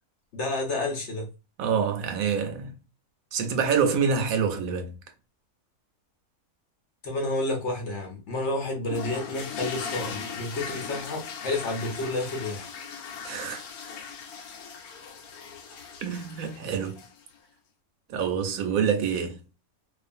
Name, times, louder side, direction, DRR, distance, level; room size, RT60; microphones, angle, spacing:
voice 1, 0.3-1.3 7.0-12.7, left 2 dB, 60° left, 0.9 m, -30 dB
voice 2, 1.6-2.8 3.3-5.0 13.2-13.6 16.0-17.0 18.1-19.4, right 6 dB, 75° right, 1.0 m, -26 dB
sound 1, 8.9-17.3, left 6 dB, 90° left, 1.1 m, -38 dB
2.4 x 2.4 x 2.5 m
omnidirectional pair, 1.5 m